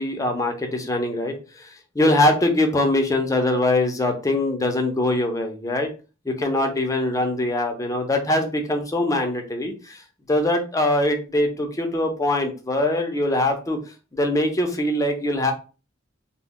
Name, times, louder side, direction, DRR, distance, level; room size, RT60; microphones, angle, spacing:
voice 1, 0.0-5.9 6.3-10.0 10.3-13.8 14.1-15.5, left 1 dB, 15° left, 4 dB, 0.5 m, -22 dB
2.1 x 2.1 x 3.6 m, 0.34 s
head